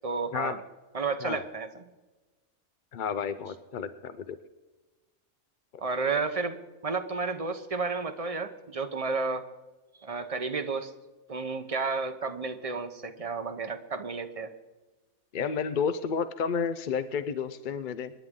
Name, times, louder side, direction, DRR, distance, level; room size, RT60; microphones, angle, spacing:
voice 1, 0.0-0.6 0.9-1.8 5.8-6.6 6.8-9.4 10.0-10.9 11.3-14.5, right 4 dB, 30° right, 8 dB, 0.8 m, -32 dB
voice 2, 2.9-4.4 15.3-18.1, left 6 dB, 55° left, 12 dB, 0.5 m, -31 dB
27.0 x 10.5 x 3.7 m, 1.2 s
omnidirectional pair, 1.5 m